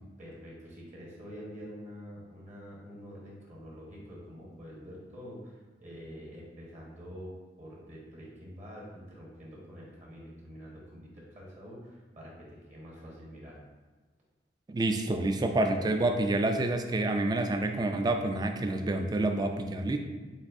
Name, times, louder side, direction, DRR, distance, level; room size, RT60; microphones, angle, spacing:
voice 1, 0.2-13.6, equal, 45° right, -4 dB, 1.2 m, -46 dB
voice 2, 14.7-20.0, right 2 dB, 25° right, 6 dB, 0.3 m, -28 dB
7.1 x 2.6 x 2.6 m, 1.3 s
head